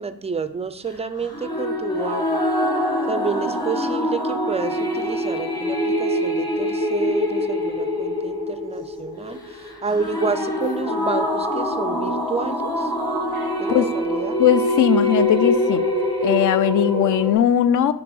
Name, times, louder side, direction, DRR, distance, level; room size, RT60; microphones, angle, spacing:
voice 1, 0.0-2.5 3.1-9.4 9.8-12.9 13.6-14.4, right 5 dB, 20° right, 11 dB, 0.3 m, -29 dB
sound 1, 1.3-17.3, left 1 dB, 10° left, 1.0 m, -24 dB
voice 2, 13.4-13.9 14.4-15.8 16.2-17.9, left 10 dB, 55° left, 13 dB, 0.4 m, -19 dB
5.8 x 3.0 x 5.3 m, 0.80 s
cardioid pair, 100°, 37 cm